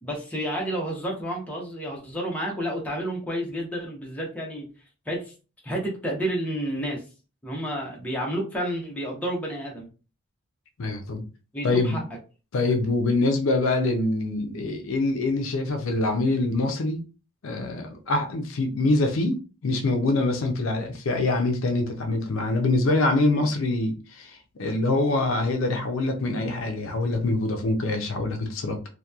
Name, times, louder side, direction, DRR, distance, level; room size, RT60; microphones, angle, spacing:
voice 1, 0.0-4.7 5.1-5.3 5.6-7.0 7.4-9.9 11.5-12.0, equal, 5° left, 0.6 m, -30 dB
voice 2, 10.8-11.2 11.6-12.0 12.5-17.0 17.4-28.9, left 2 dB, 65° left, 0.4 m, -25 dB
2.8 x 2.1 x 2.3 m
head